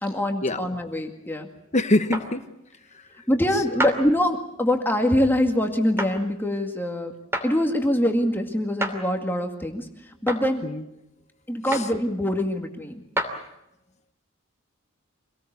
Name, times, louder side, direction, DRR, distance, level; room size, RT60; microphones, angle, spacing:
voice 1, 0.0-1.5 3.3-7.1 7.4-9.9 10.2-10.6 11.5-13.0, left 1 dB, 10° left, 3 dB, 2.0 m, -24 dB
voice 2, 1.7-2.5 2.9-3.0 3.5-3.8 10.6-10.8 11.7-11.9, left 1 dB, 35° left, 10 dB, 1.3 m, -25 dB
sound 1, 2.1-2.3 3.8-4.0 6.0-6.1 7.3-7.5 8.8-9.0 10.3-10.4 11.7-11.9 13.2-13.3, right 1 dB, 10° right, 2.8 m, -27 dB
25.5 x 18.5 x 8.1 m, 0.84 s
head